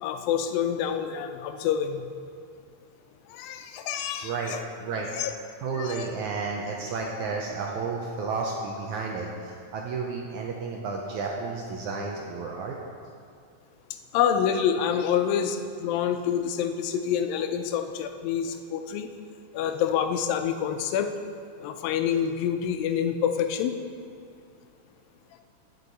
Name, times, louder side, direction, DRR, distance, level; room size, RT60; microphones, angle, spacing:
voice 1, 0.0-2.1 3.3-4.6 5.1-5.3 5.7-6.1 14.1-19.1 19.5-21.1 21.6-23.8, left 8 dB, 90° left, 7 dB, 2.4 m, -27 dB
voice 2, 4.2-5.4 5.6-12.8, right 4 dB, 75° right, -1 dB, 1.9 m, -32 dB
19.0 x 6.5 x 4.0 m, 2.3 s
omnidirectional pair, 4.0 m